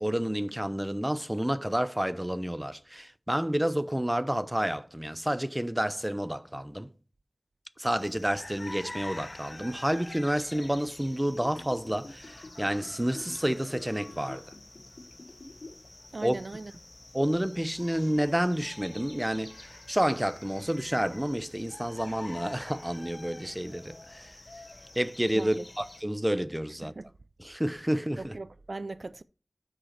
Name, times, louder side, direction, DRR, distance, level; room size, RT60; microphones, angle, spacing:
voice 1, 0.0-6.9 7.8-14.4 16.2-16.3 17.1-24.4 25.0-26.9 27.4-28.3, equal, 15° right, 0.6 m, -30 dB
sound 1, 7.8-26.0, left 2 dB, 55° left, 1.0 m, -47 dB
Gurgling / Bathtub (filling or washing), 10.7-15.9 16.2-16.3, left 2 dB, 75° left, 1.2 m, -46 dB
voice 2, 16.1-16.7 25.3-25.7 26.8-27.1 28.2-29.2, right 3 dB, 75° right, 0.3 m, -39 dB
6.5 x 4.4 x 6.5 m
wide cardioid pair, 45°, 0 cm